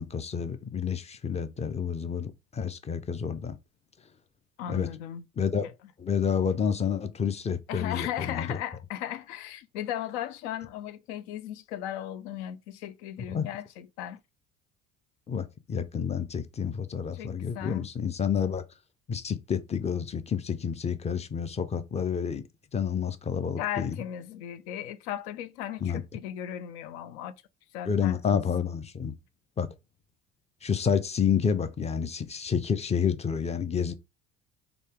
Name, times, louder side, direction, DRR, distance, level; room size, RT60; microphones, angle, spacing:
voice 1, 0.0-3.6 4.7-4.9 5.4-5.7 6.0-8.6 13.3-13.5 15.3-18.6 19.1-22.4 22.7-24.0 25.8-26.0 27.9-29.1 29.6-29.7 30.6-33.9, left 7 dB, 20° left, 0.5 m, -29 dB
voice 2, 4.6-5.3 7.7-14.2 17.1-17.9 23.6-27.3 27.7-28.4, left 11 dB, 65° left, 0.6 m, -36 dB
3.9 x 2.2 x 3.4 m
figure-of-eight pair, 55°, 36 cm